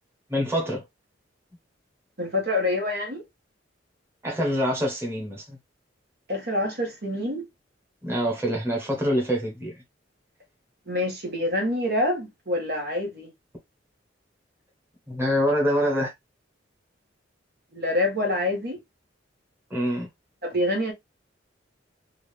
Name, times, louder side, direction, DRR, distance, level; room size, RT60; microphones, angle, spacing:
voice 1, 0.3-0.8 4.2-5.6 8.0-9.7 15.1-16.1 19.7-20.1, equal, 15° right, 1.3 m, -25 dB
voice 2, 2.2-3.2 6.3-7.4 10.9-13.3 17.7-18.8 20.4-20.9, left 1 dB, 55° right, 1.5 m, -26 dB
3.8 x 2.5 x 3.3 m
head